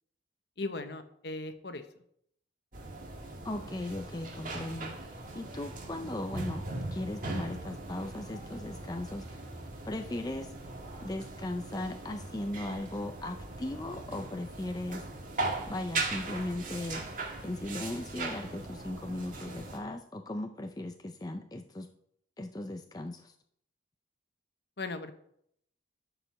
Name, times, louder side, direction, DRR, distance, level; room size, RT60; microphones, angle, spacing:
voice 1, 0.6-1.8 24.8-25.1, left 2 dB, 60° left, 8 dB, 1.0 m, -37 dB
sound 1, 2.7-19.8, right 3 dB, 45° right, 1.7 m, -39 dB
voice 2, 3.4-6.6 6.9-10.7 11.0-15.1 15.7-17.0 17.4-21.9 22.4-23.3, left 1 dB, 20° left, 5 dB, 0.5 m, -38 dB
13.0 x 4.9 x 6.3 m, 0.71 s
head